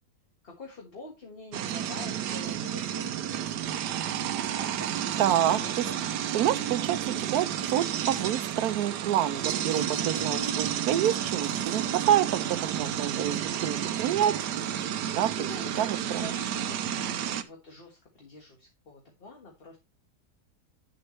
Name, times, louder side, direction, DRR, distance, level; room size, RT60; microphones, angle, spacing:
voice 1, 0.4-3.6 4.5-6.3 15.3-19.8, left 3 dB, 35° left, 1.6 m, -46 dB
sound 1, 1.5-17.4, right 10 dB, 90° right, 1.4 m, -31 dB
voice 2, 5.2-5.9 6.3-14.4 15.1-15.5 15.8-16.3, right 11 dB, 70° right, 1.1 m, -28 dB
9.3 x 7.4 x 3.1 m
omnidirectional pair, 1.8 m